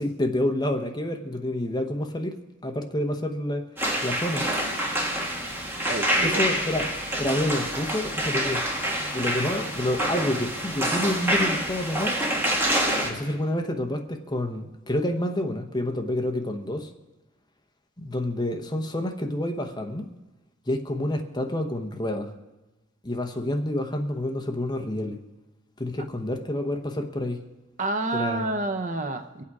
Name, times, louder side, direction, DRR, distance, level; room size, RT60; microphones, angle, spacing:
voice 1, 0.0-3.7 4.0-4.4 6.2-6.9 7.2-8.7 9.1-12.2 13.0-16.9 18.0-20.1 20.7-22.3 23.0-25.2 25.8-27.4 28.1-28.4, left 1 dB, 20° left, 5 dB, 0.9 m, -28 dB
sound 1, 3.8-13.1, right 1 dB, 10° right, 1.8 m, -27 dB
voice 2, 5.9-6.4 9.2-9.4 27.8-29.4, right 2 dB, 40° right, 8 dB, 0.7 m, -29 dB
23.5 x 8.6 x 4.8 m, 1.1 s
head